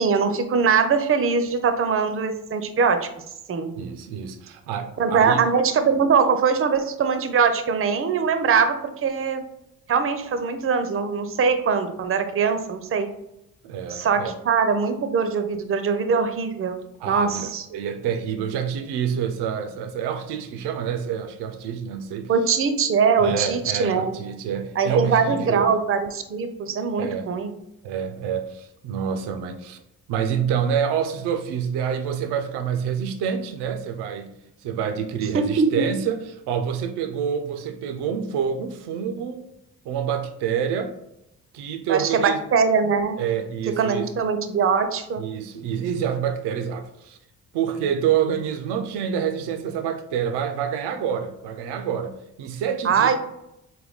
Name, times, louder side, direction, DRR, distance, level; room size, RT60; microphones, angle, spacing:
voice 1, 0.0-3.1 3.5-3.7 5.0-9.4 9.9-13.1 13.9-16.8 17.0-17.6 22.3-24.1 24.8-27.5 35.3-35.9 41.9-43.2 43.8-45.2 52.8-53.2, right 5 dB, 35° right, 0.6 m, -22 dB
voice 2, 3.8-5.4 13.6-14.4 17.0-22.3 23.2-25.7 27.0-27.3 27.8-29.8 30.1-34.3 34.6-39.5 39.8-41.0 41.5-42.4 43.2-44.1 45.2-47.2 47.5-53.1, right 8 dB, 75° right, 0.6 m, -27 dB
4.0 x 2.2 x 3.5 m
hypercardioid pair, 50°, 41 cm